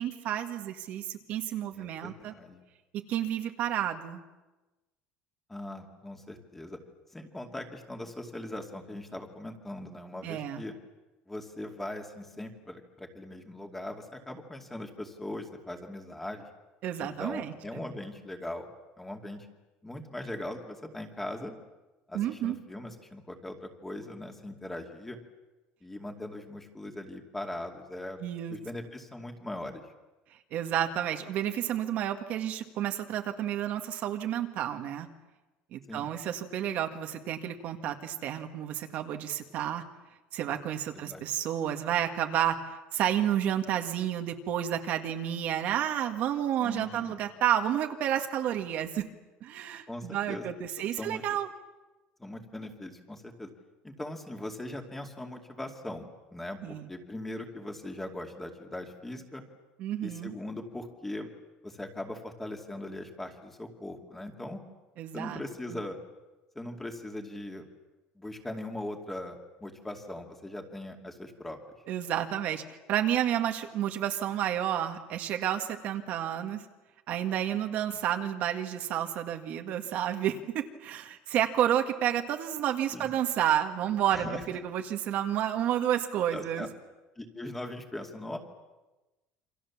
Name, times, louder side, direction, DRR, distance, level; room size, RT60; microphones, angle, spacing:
voice 1, 0.0-2.3 3.1-4.2 10.2-10.6 16.8-17.5 22.1-22.6 28.2-28.6 30.5-35.1 35.7-39.8 40.3-49.1 49.4-51.5 56.6-56.9 59.8-60.3 65.0-65.4 65.7-65.8 71.9-72.6 72.9-76.6 77.1-86.7, right 10 dB, 45° right, 5 dB, 1.8 m, -30 dB
voice 2, 1.7-2.6 5.5-6.8 7.1-10.7 11.3-16.5 17.0-18.7 19.0-19.5 19.8-21.6 22.1-25.2 25.8-28.2 28.5-29.8 35.9-36.1 41.0-41.2 46.6-47.2 49.9-50.4 51.0-51.2 52.2-53.5 53.8-59.4 60.0-61.3 61.6-64.6 65.1-66.0 66.6-67.6 68.2-71.6 82.9-83.1 84.1-84.4 86.3-86.7 87.2-88.4, left 1 dB, 5° left, 3 dB, 2.4 m, -40 dB
28.0 x 25.5 x 7.3 m, 1.1 s
cardioid pair, 170°, 4 cm